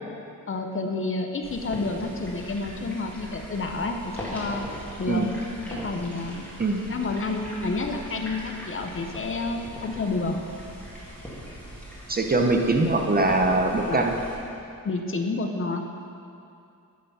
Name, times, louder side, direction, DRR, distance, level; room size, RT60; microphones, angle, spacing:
voice 1, 0.5-4.7 5.0-5.3 5.7-6.5 6.9-10.4 13.8-14.0 14.8-15.8, left 3 dB, 40° left, 4 dB, 0.7 m, -29 dB
sound 1, 1.4-14.4, equal, 5° left, 1.7 m, -40 dB
voice 2, 12.1-14.1, right 2 dB, 30° right, 3 dB, 0.6 m, -22 dB
9.2 x 6.7 x 5.5 m, 2.5 s
wide cardioid pair, 170°, 32 cm